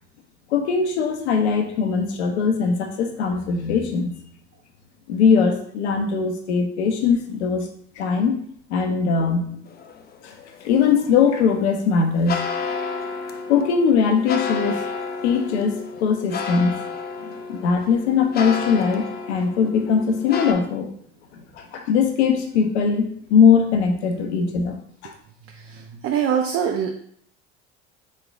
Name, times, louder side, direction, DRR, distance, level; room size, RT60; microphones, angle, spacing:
voice 1, 0.5-4.2 5.1-7.7 8.0-8.4 8.7-9.6 10.2-10.3 10.6-12.4 13.5-14.8 15.2-16.8 17.2-20.9 21.5-24.8 25.0-25.1, left 6 dB, 80° left, 5 dB, 0.7 m, -20 dB
sound 1, 9.7-20.5, left 5 dB, 30° left, 0.5 m, -31 dB
voice 2, 25.7-26.9, right 8 dB, 40° right, 4 dB, 0.5 m, -23 dB
3.7 x 3.2 x 2.4 m, 0.63 s
hypercardioid pair, 70°, 33 cm